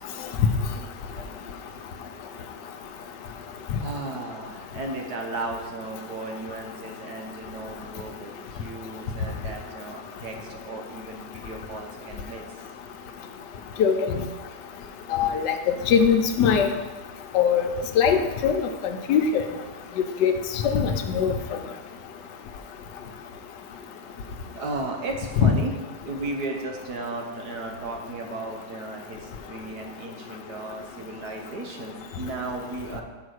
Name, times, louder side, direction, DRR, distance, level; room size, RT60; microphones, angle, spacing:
voice 1, 3.8-12.4 24.5-25.7 26.0-33.0, right 2 dB, 70° right, 1 dB, 1.6 m, -35 dB
voice 2, 15.1-15.5 15.9-16.7 17.3-17.6 18.0-18.6 19.1-19.4 20.2-20.3 20.6-21.3 25.4-25.5, left 7 dB, 90° left, 6 dB, 1.3 m, -20 dB
5.9 x 4.8 x 6.4 m, 1.3 s
omnidirectional pair, 1.8 m